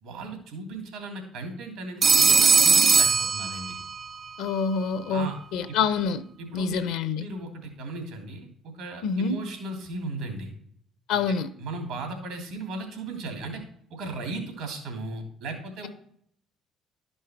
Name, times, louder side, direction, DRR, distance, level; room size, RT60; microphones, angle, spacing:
voice 1, 0.0-3.8 5.1-5.3 5.7-5.8 6.4-6.9 7.1-10.5 11.1-13.6 13.9-15.9, right 2 dB, 85° right, 2.8 m, -36 dB
Telephone, 2.0-4.1, right 5 dB, 35° right, 0.3 m, -19 dB
voice 2, 4.4-6.2 6.5-7.3 9.0-9.4 11.1-11.5, left 5 dB, 75° left, 0.6 m, -26 dB
11.5 x 5.5 x 4.5 m
supercardioid pair, 65°, 0 cm